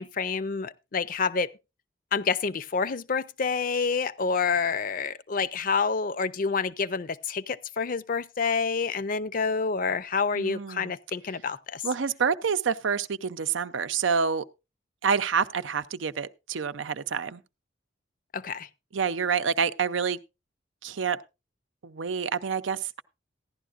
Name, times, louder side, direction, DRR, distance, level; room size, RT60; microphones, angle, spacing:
voice 1, 0.0-1.5 2.1-11.8 18.3-18.7, left 5 dB, 45° left, 0.5 m, -28 dB
voice 2, 10.4-10.9 11.8-14.4 15.0-17.4 18.9-20.2 20.8-21.2 21.8-23.0, right 6 dB, 90° right, 0.6 m, -27 dB
15.5 x 11.0 x 2.5 m
head